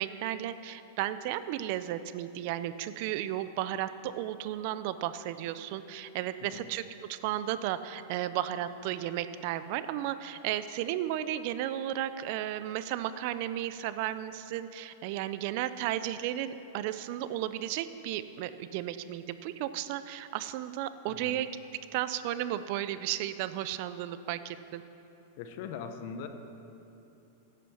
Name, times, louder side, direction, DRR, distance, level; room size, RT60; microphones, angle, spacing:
voice 1, 0.0-6.8 7.1-21.5 21.9-24.8, right 12 dB, 50° right, 13 dB, 0.4 m, -34 dB
voice 2, 21.1-21.4 25.4-26.3, left 6 dB, 50° left, 7 dB, 0.8 m, -41 dB
11.0 x 7.5 x 6.3 m, 2.9 s
supercardioid pair, 155°, 0 cm